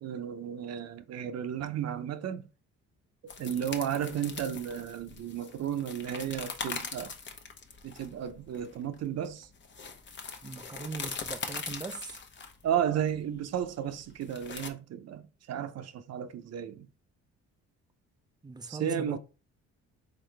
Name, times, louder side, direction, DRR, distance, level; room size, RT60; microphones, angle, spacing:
voice 1, 0.0-2.5 3.2-7.1 7.8-9.5 12.6-16.9 18.7-19.2, right 9 dB, 60° right, 0.7 m, -33 dB
sound 1, 3.3-14.7, left 5 dB, 40° left, 0.9 m, -41 dB
voice 2, 10.4-12.2 18.4-19.2, right 4 dB, 15° right, 0.4 m, -40 dB
4.0 x 3.9 x 3.3 m
cardioid pair, 90°, 30 cm